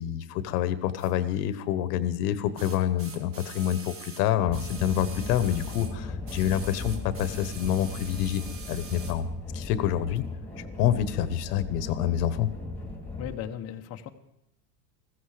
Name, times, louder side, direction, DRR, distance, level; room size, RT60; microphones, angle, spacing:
voice 1, 0.0-9.3 9.5-10.2 10.6-12.5, left 11 dB, 70° left, 13 dB, 1.2 m, -27 dB
sound 1, 1.0-1.1 2.6-6.0 6.3-9.2 10.2-10.3, right 4 dB, 25° right, 1.7 m, -45 dB
sound 2, 4.5-13.3, left 2 dB, 5° left, 2.1 m, -37 dB
voice 2, 13.2-14.1, left 10 dB, 30° left, 4 dB, 0.9 m, -36 dB
15.0 x 14.5 x 4.9 m, 0.85 s
supercardioid pair, 135°, 49 cm